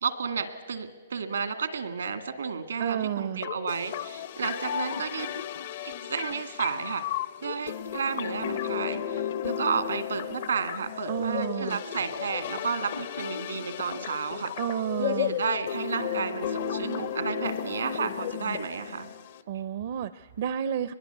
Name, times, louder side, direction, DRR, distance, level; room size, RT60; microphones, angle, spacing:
voice 1, 0.0-5.3 5.8-7.0 7.4-14.5 15.0-19.1, right 5 dB, 90° right, 9 dB, 2.0 m, -32 dB
voice 2, 2.8-3.5 11.1-11.8 14.6-15.4 19.5-20.9, right 9 dB, 60° right, 14 dB, 0.6 m, -31 dB
sound 1, 3.4-19.4, left 9 dB, 60° left, 1.0 m, -34 dB
23.0 x 21.0 x 8.1 m, 1.4 s
hypercardioid pair, 140°, 0 cm